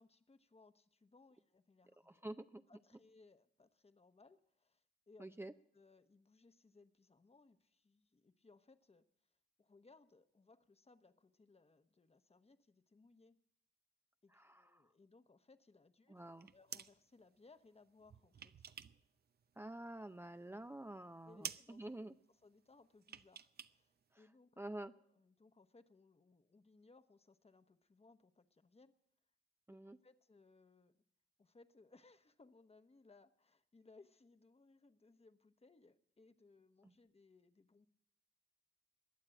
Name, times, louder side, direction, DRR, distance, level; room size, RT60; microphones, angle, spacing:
voice 1, 0.0-2.3 2.7-13.4 14.2-16.2 16.5-18.7 21.2-24.6 25.0-29.0 29.8-31.0 31.4-37.9, left 3 dB, 30° left, 10 dB, 1.1 m, -66 dB
voice 2, 2.1-2.6 5.2-5.5 14.3-14.8 16.1-16.5 19.6-22.1 24.1-24.2 24.6-24.9 29.7-30.0 36.8-36.9, right 1 dB, 10° right, 9 dB, 0.6 m, -49 dB
sound 1, 16.2-17.0 18.0-19.1 19.3-20.2 20.6-20.7 21.0-21.1 21.4-21.7 23.0-23.8 24.0-24.1, right 7 dB, 55° right, 0.6 m, -50 dB
21.0 x 7.4 x 9.1 m, 0.72 s
cardioid pair, 50°, 19 cm